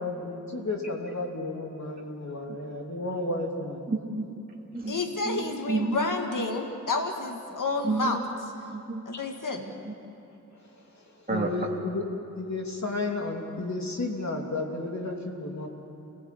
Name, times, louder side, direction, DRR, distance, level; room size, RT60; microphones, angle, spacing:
voice 1, 0.0-3.8 9.1-9.2 10.9-12.0 12.3-15.7, left 2 dB, 55° left, 1 dB, 2.9 m, -32 dB
voice 2, 3.9-4.2 4.7-5.0 5.2-6.0 7.8-8.2 8.7-9.0 9.6-9.9 11.3-11.5, right 3 dB, 25° right, -2 dB, 2.7 m, -30 dB
voice 3, 4.9-8.2 9.1-9.6, left 3 dB, 75° left, 3 dB, 1.9 m, -30 dB
28.0 x 18.5 x 8.4 m, 2.9 s
wide cardioid pair, 100°, 32 cm